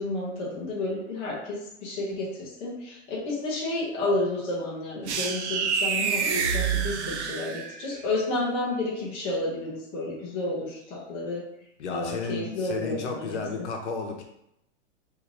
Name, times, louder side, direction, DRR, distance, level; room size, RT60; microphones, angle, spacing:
voice 1, 0.0-11.4 11.9-13.4, left 2 dB, 15° left, -6 dB, 0.5 m, -31 dB
sound 1, 5.1-7.9, right 6 dB, 70° right, 0.6 m, -27 dB
voice 2, 11.8-14.2, left 4 dB, 70° left, 2 dB, 0.9 m, -33 dB
3.1 x 2.7 x 3.8 m, 0.80 s
hypercardioid pair, 165°, 36 cm